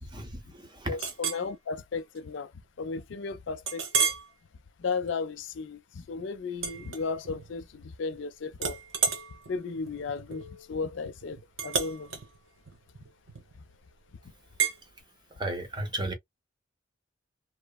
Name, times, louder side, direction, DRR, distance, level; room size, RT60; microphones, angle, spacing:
voice 1, 0.1-1.0 15.3-16.1, right 1 dB, 20° right, 0.6 m, -34 dB
voice 2, 0.9-2.5 2.8-4.1 4.8-8.8 9.5-12.1, left 4 dB, 60° left, 0.4 m, -35 dB
Chink clink, 1.0-1.5 2.0-2.2 2.6-2.7 3.7-4.3 4.8-5.1 6.6-7.5 7.8-8.2 8.6-13.7 14.6-14.8, right 6 dB, 70° right, 0.8 m, -32 dB
3.1 x 2.0 x 2.2 m
head